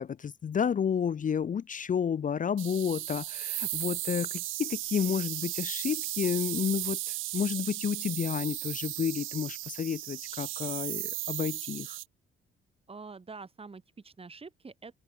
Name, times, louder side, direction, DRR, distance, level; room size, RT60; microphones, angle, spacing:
voice 1, 0.0-12.0, left 7 dB, 40° left, 0.8 m, -31 dB
sound 1, 2.6-12.0, right 17 dB, 90° right, 1.2 m, -36 dB
voice 2, 12.9-15.0, right 4 dB, 30° right, 4.4 m, -46 dB
open air
cardioid pair, 90°, 20 cm